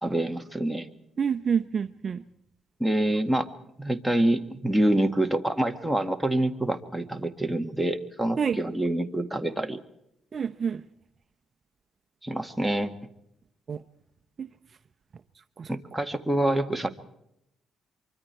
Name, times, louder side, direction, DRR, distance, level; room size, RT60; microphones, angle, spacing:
voice 1, 0.0-0.9 2.8-3.5 3.8-9.8 12.2-12.9 15.7-16.9, right 1 dB, 5° right, 5 dB, 1.9 m, -26 dB
voice 2, 1.2-2.2 8.4-8.6 10.3-10.8 13.7-13.8 14.4-14.5 15.6-15.7, right 6 dB, 40° right, 8 dB, 0.8 m, -27 dB
24.5 x 24.0 x 4.5 m, 0.81 s
cardioid pair, 95°, 0 cm